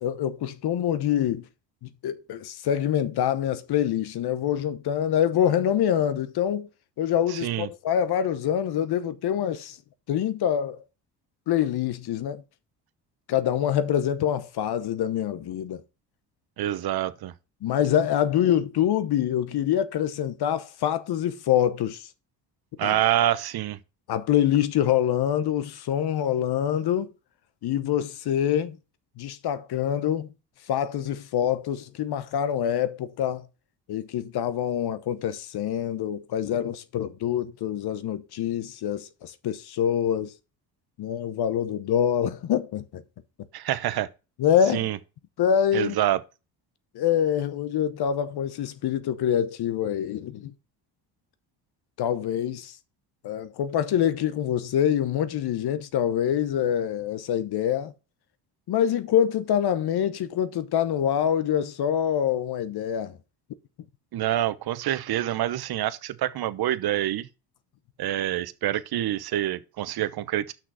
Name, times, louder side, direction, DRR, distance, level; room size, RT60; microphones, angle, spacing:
voice 1, 0.0-1.4 1.8-6.7 7.0-9.8 10.1-10.8 11.5-12.4 13.3-15.8 17.6-22.1 22.8-22.9 24.1-27.1 27.6-28.8 29.2-30.3 30.7-33.5 33.9-40.3 41.0-43.0 44.4-44.9 45.4-46.0 46.9-50.5 52.0-52.8 53.2-57.9 58.7-63.2, left 10 dB, 60° left, 1.0 m, -25 dB
voice 2, 7.3-7.7 16.6-17.3 22.8-23.8 43.5-44.1 44.7-45.0 45.7-46.2 64.1-67.3 68.0-70.5, right 12 dB, 55° right, 0.9 m, -26 dB
6.2 x 5.9 x 5.5 m
supercardioid pair, 75°, 44 cm